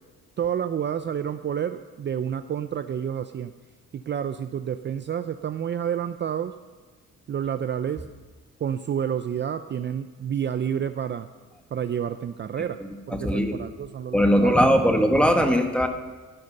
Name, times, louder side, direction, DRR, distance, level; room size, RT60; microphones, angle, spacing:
voice 1, 0.4-3.5 3.9-6.5 7.3-8.1 8.6-11.3 11.7-12.8 13.1-14.6, right 8 dB, 40° right, 10 dB, 0.5 m, -29 dB
voice 2, 12.8-13.6 14.1-15.9, equal, 5° left, 4 dB, 1.6 m, -20 dB
14.5 x 9.3 x 6.6 m, 1.4 s
cardioid pair, 90°, 30 cm